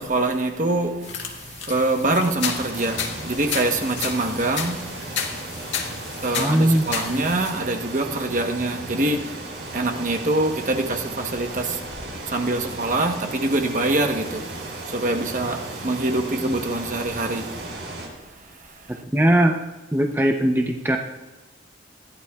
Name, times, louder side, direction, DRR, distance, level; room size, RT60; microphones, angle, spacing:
voice 1, 0.0-19.0, right 2 dB, 45° right, 1.1 m, -25 dB
sound 1, 1.0-7.5, left 6 dB, 80° left, 1.8 m, -32 dB
sound 2, 2.5-18.1, right 1 dB, 75° right, 4.8 m, -36 dB
voice 2, 6.4-6.8 7.1-7.3 16.4-16.5 18.9-19.6 19.9-21.0, right 1 dB, 10° right, 0.7 m, -20 dB
20.5 x 14.5 x 2.4 m
head